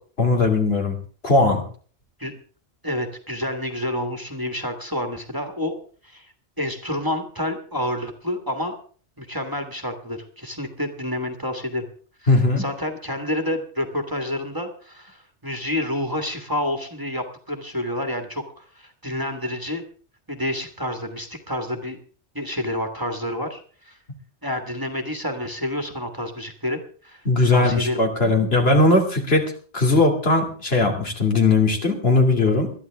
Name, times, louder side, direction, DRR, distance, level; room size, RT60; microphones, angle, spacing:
voice 1, 0.2-1.0 1.2-1.6 12.3-12.6 27.3-32.7, left 2 dB, 60° left, 2 dB, 2.9 m, -19 dB
voice 2, 2.8-5.8 6.0-8.8 9.2-11.9 12.2-19.8 20.3-22.0 22.3-24.0 24.4-27.2 27.5-28.0, left 1 dB, 20° right, 5 dB, 1.6 m, -29 dB
21.0 x 13.0 x 3.5 m, 0.42 s
omnidirectional pair, 1.2 m